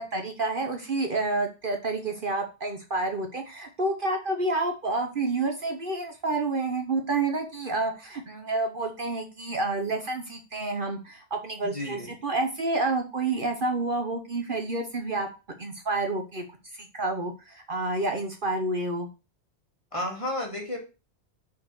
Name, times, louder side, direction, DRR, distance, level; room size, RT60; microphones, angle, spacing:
voice 1, 0.0-15.3 15.6-16.4 16.7-19.1, right 2 dB, 50° right, 5 dB, 1.2 m, -29 dB
voice 2, 11.6-12.1 19.9-20.8, left 1 dB, 25° left, -1 dB, 2.6 m, -32 dB
6.4 x 4.4 x 6.4 m, 0.31 s
omnidirectional pair, 1.2 m